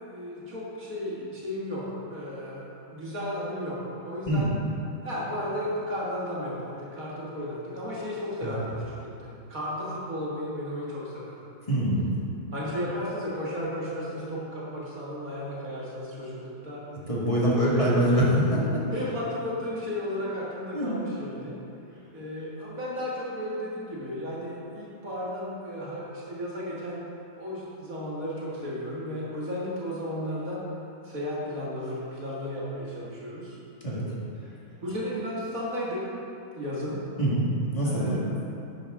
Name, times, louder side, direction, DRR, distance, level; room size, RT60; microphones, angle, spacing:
voice 1, 0.0-4.5 5.0-11.4 12.5-16.9 17.4-17.9 18.9-21.5 22.1-27.1 27.4-30.6 31.0-33.6 34.8-36.0 36.5-37.0 37.8-38.2, left 1 dB, 60° right, -6 dB, 2.1 m, -34 dB
voice 2, 11.7-12.0 16.9-18.8 20.7-20.9 33.8-34.0 37.2-38.2, equal, 20° left, -7 dB, 1.8 m, -24 dB
10.5 x 8.8 x 3.7 m, 2.8 s
omnidirectional pair, 1.7 m